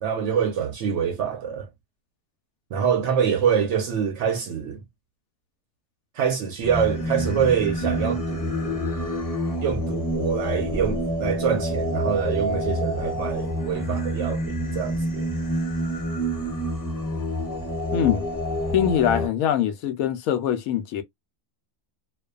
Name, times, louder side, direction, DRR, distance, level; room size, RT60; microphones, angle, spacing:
voice 1, 0.0-1.7 2.7-4.8 6.1-8.8 9.6-15.3, right 7 dB, 65° right, 0.7 m, -25 dB
Singing, 6.6-19.3, equal, 15° left, 0.7 m, -27 dB
voice 2, 17.9-18.2 18.7-21.0, left 10 dB, 75° left, 1.0 m, -23 dB
2.5 x 2.3 x 2.3 m
omnidirectional pair, 1.5 m